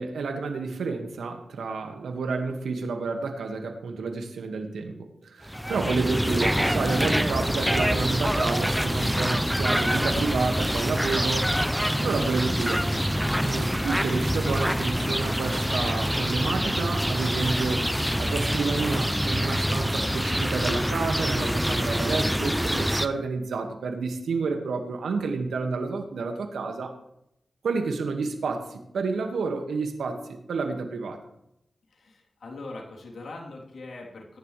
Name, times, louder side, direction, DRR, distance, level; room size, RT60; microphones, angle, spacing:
voice 1, 0.0-11.7 12.0-13.0 13.4-17.9 18.2-26.9 27.6-31.2, right 4 dB, 85° right, 4 dB, 2.0 m, -30 dB
sound 1, 5.5-23.1, equal, 5° right, 0.9 m, -25 dB
voice 2, 31.9-34.4, left 2 dB, 70° left, -2 dB, 3.6 m, -41 dB
22.5 x 10.5 x 3.4 m, 0.80 s
cardioid pair, 45°, 0 cm